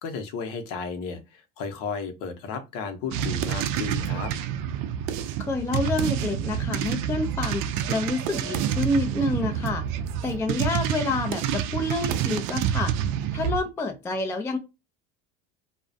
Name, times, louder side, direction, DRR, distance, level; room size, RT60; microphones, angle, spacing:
voice 1, 0.0-4.3, left 5 dB, 60° left, 0.7 m, -34 dB
sound 1, 3.1-13.6, right 9 dB, 65° right, 0.5 m, -28 dB
voice 2, 5.4-9.9 10.2-13.0 13.3-14.6, left 2 dB, 10° left, 0.3 m, -28 dB
2.3 x 2.1 x 2.6 m
supercardioid pair, 90°, 38 cm